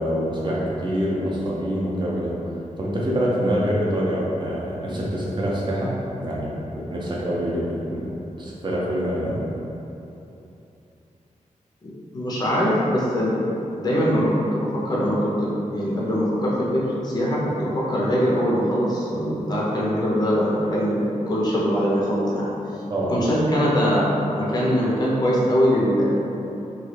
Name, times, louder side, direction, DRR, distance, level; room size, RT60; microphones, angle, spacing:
voice 1, 0.0-2.3 2.8-8.1 8.4-9.4 22.9-23.1, equal, 35° right, -5 dB, 0.5 m, -25 dB
voice 2, 11.8-22.5 23.1-26.1, equal, 30° left, -6 dB, 0.5 m, -22 dB
2.9 x 2.2 x 3.1 m, 2.9 s
wide cardioid pair, 145°, 13 cm